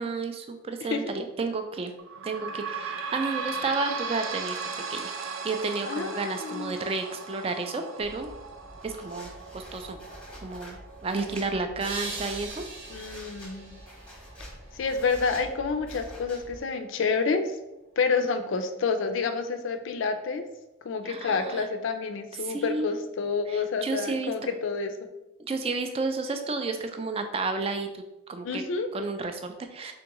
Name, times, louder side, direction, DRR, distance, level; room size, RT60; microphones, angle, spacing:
voice 1, 0.0-1.9 2.2-4.6 4.9-5.1 5.4-8.3 8.8-10.0 10.4-10.8 11.0-12.6 21.0-21.6 22.4-23.0 23.5-24.3 25.4-28.0 28.3-28.6 28.9-29.9, right 3 dB, 30° right, 7 dB, 0.3 m, -31 dB
sound 1, 2.0-15.1 15.7-15.8 16.1-16.2 17.0-17.1, right 5 dB, 85° right, 0.5 m, -38 dB
voice 2, 5.9-6.8 12.9-13.8 14.7-17.5 18.0-20.4 20.8-24.9 28.4-28.9, left 4 dB, 75° left, 8 dB, 0.4 m, -28 dB
sound 2, 8.0-16.6, equal, 5° left, 0.8 m, -46 dB
sound 3, 11.8-14.9, right 3 dB, 70° right, 1.0 m, -41 dB
3.5 x 3.5 x 3.0 m, 0.95 s
head